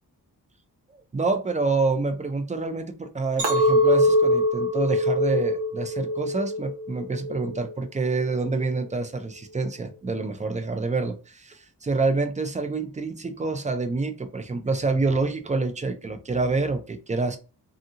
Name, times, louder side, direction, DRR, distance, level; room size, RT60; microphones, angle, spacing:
voice 1, 1.1-17.4, right 3 dB, 20° right, 7 dB, 0.3 m, -27 dB
Chink clink, 3.4-7.7 8.2-8.6, equal, 75° right, 0.9 m, -23 dB
2.6 x 2.4 x 2.7 m, 0.34 s
wide cardioid pair, 140°, 39 cm